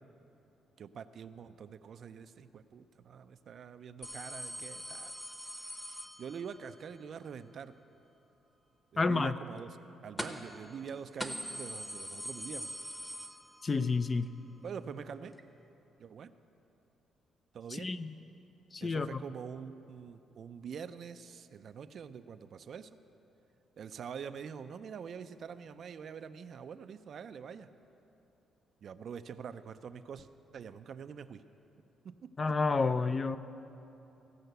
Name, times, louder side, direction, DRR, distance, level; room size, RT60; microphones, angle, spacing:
voice 1, 0.8-5.1 5.5-5.7 6.2-7.8 8.9-9.8 10.0-12.7 14.6-15.3 16.0-16.3 17.5-17.9 18.8-22.9 23.8-27.7 28.8-31.4 32.0-32.6, right 7 dB, 60° right, 11 dB, 0.4 m, -45 dB
sound 1, 4.0-6.7 10.2-10.6 10.9-11.0 11.2-13.9 14.3-14.4 15.4-15.5, equal, 10° left, 0.9 m, -42 dB
voice 2, 9.0-9.3 13.6-14.3 17.7-18.1 18.7-19.2 32.4-33.4, left 4 dB, 30° left, 12 dB, 0.4 m, -30 dB
15.5 x 5.6 x 7.9 m, 2.9 s
cardioid pair, 90°, 0 cm